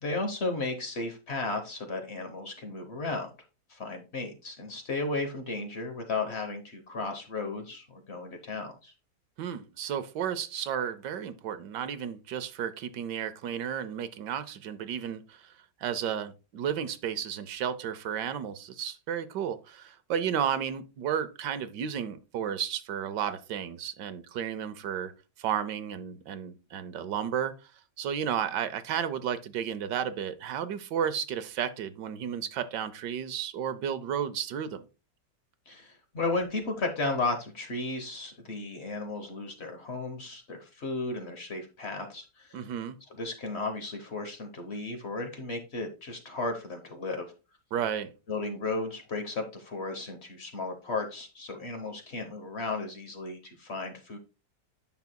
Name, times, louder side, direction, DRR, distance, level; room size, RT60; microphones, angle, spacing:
voice 1, 0.0-3.3 3.7-8.9 35.7-42.6 43.2-47.3 48.3-54.2, left 3 dB, 45° left, 1.1 m, -34 dB
voice 2, 9.4-15.5 15.8-25.1 25.4-27.7 28.0-34.8 42.5-43.0 47.7-48.1, right 8 dB, 80° right, 1.3 m, -33 dB
9.3 x 5.9 x 2.2 m
omnidirectional pair, 1.9 m